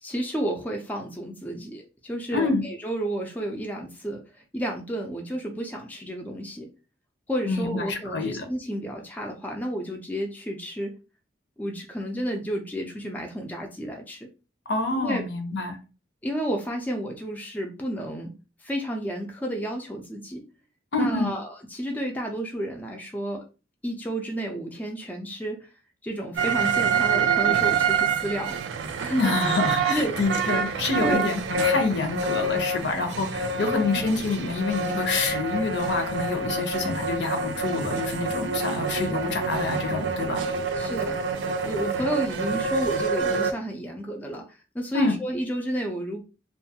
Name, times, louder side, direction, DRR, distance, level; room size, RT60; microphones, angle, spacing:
voice 1, 0.0-4.2 4.5-6.7 7.3-10.9 11.6-14.3 14.9-15.3 16.2-18.3 18.6-20.4 21.0-23.4 23.8-25.7 26.0-29.3 29.9-30.2 31.0-31.3 33.9-34.1 40.7-41.2 41.6-44.4 44.7-46.2, right 1 dB, 10° left, 0.3 m, -31 dB
voice 2, 2.3-2.6 7.5-8.5 14.7-15.8 20.9-21.3 29.2-40.4 44.9-45.2, left 3 dB, 65° left, 0.6 m, -27 dB
sound 1, 26.3-43.5, right 4 dB, 70° right, 0.3 m, -27 dB
2.5 x 2.3 x 2.7 m
head